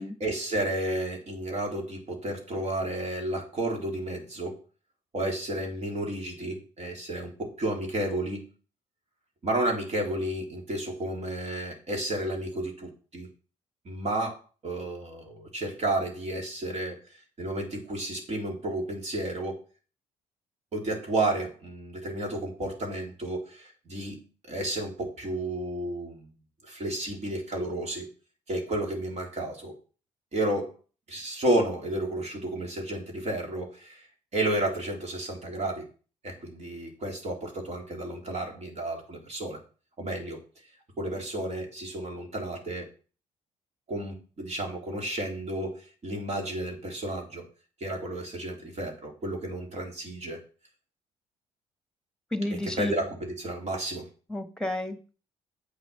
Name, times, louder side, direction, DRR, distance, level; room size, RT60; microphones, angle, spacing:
voice 1, 0.2-4.6 5.1-8.5 9.4-13.3 13.9-17.0 17.4-19.6 20.7-26.3 26.6-28.1 28.5-29.7 30.3-30.8 31.1-34.0 34.3-35.9 36.2-39.6 40.0-40.4 41.0-42.9 43.9-47.4 47.8-50.4 52.5-54.1, right 1 dB, 45° right, 1 dB, 3.6 m, -32 dB
voice 2, 52.3-52.9 54.3-55.1, left 1 dB, 5° left, 8 dB, 1.8 m, -31 dB
8.4 x 5.9 x 5.7 m, 0.37 s
supercardioid pair, 60°, 15 cm